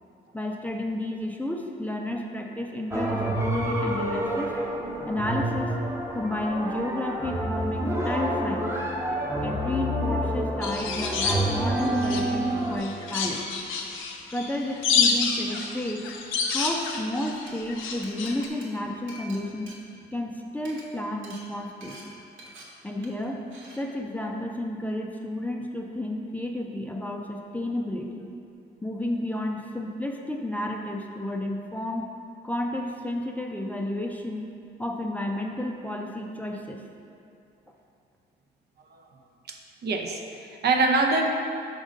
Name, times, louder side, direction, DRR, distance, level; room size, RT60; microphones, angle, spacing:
voice 1, 0.3-4.5 5.1-5.7 6.1-8.8 9.4-13.5 14.3-16.0 16.5-19.7 20.1-22.0 22.8-23.4 23.8-28.2 28.8-32.1 32.4-34.5 34.8-36.8, left 1 dB, 10° left, 1 dB, 0.5 m, -31 dB
sound 1, 2.9-12.8, right 1 dB, 15° right, 0.8 m, -28 dB
sound 2, 10.6-12.4 12.8-18.5, left 5 dB, 80° left, 0.6 m, -28 dB
Glass, 17.5-17.6 18.0-20.3 20.6-20.8 21.2-21.4 21.8-22.0 22.4-22.6 23.0-23.2 23.5-23.8, right 2 dB, 75° right, 1.2 m, -47 dB
voice 2, 39.8-41.3, right 3 dB, 55° right, 2 dB, 0.6 m, -24 dB
5.2 x 3.8 x 5.0 m, 2.5 s
cardioid pair, 90°, 20 cm